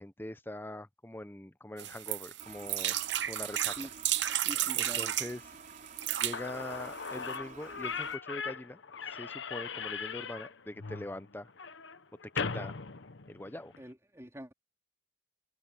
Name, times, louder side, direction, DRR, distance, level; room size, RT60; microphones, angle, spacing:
voice 1, 0.0-3.0 3.3-3.9 4.7-5.6 6.2-8.8 9.1-11.5 12.3-12.7 13.3-13.7, left 1 dB, 10° left, 0.8 m, -43 dB
sound 1, 1.8-5.3 5.9-6.4 7.0-7.1 7.3-7.4, right 12 dB, 65° right, 0.9 m, -32 dB
Toilet flush, 2.4-8.2, right 4 dB, 40° right, 5.2 m, -52 dB
voice 2, 4.4-5.1 13.8-14.5, equal, 15° right, 3.6 m, -45 dB
Slam / Squeak, 6.0-6.1 6.3-13.8, left 5 dB, 70° left, 1.0 m, -39 dB
head